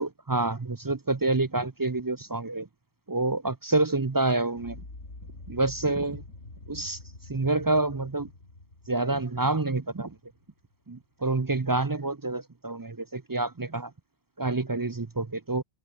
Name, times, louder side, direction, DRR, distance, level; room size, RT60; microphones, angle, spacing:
voice 1, 0.0-2.7 3.1-4.8 5.5-6.2 6.7-7.0 7.3-8.3 8.9-10.2 10.9-13.9 14.4-15.6, right 2 dB, 25° right, 0.4 m, -27 dB
sound 1, 4.5-10.6, left 2 dB, 90° left, 4.6 m, -46 dB
omnidirectional pair, 1.2 m